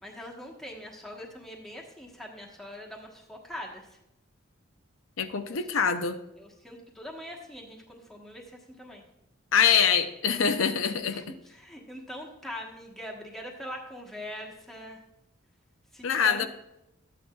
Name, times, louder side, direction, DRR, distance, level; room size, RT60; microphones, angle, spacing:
voice 1, 0.0-4.0 5.5-5.6 6.4-9.0 11.0-15.0 15.9-16.5, left 1 dB, ahead, -1 dB, 1.2 m, -42 dB
voice 2, 5.2-6.2 9.5-11.3 16.0-16.5, left 7 dB, 90° left, 9 dB, 0.6 m, -24 dB
12.5 x 8.6 x 2.3 m, 0.88 s
head